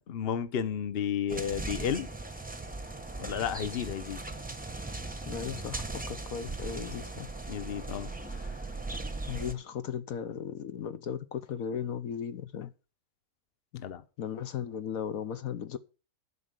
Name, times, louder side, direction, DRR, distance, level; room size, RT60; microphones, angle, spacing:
voice 1, 0.0-2.1 3.2-4.2 7.5-8.5 13.8-14.0, left 8 dB, 45° left, 1.0 m, -33 dB
sound 1, 1.3-9.5, right 2 dB, 5° right, 0.8 m, -38 dB
voice 2, 5.3-7.3 9.3-12.7 13.7-13.8 14.2-15.8, left 8 dB, 70° left, 1.2 m, -36 dB
11.5 x 5.6 x 8.1 m
omnidirectional pair, 1.6 m